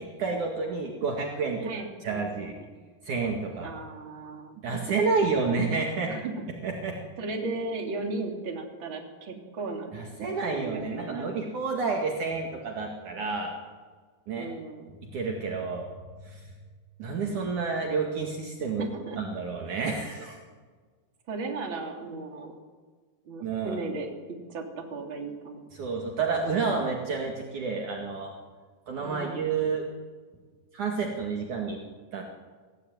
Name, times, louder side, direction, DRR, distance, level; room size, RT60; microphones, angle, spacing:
voice 1, 0.0-1.7 2.0-2.6 3.0-3.7 4.6-6.1 6.6-7.0 9.9-13.5 14.3-14.5 15.0-15.9 16.2-16.5 17.0-18.9 19.2-20.4 23.4-23.8 25.7-28.3 28.9-29.9 30.7-31.8 32.1-32.2, right 4 dB, 55° right, 0 dB, 3.4 m, -30 dB
voice 2, 1.6-2.5 3.6-4.6 6.1-6.5 7.2-9.9 10.5-11.4 14.4-15.0 18.8-19.2 21.3-22.6 23.3-24.1 24.5-25.6 29.0-29.4, right 3 dB, 35° right, 2 dB, 3.7 m, -36 dB
25.0 x 17.0 x 9.5 m, 1.5 s
omnidirectional pair, 4.4 m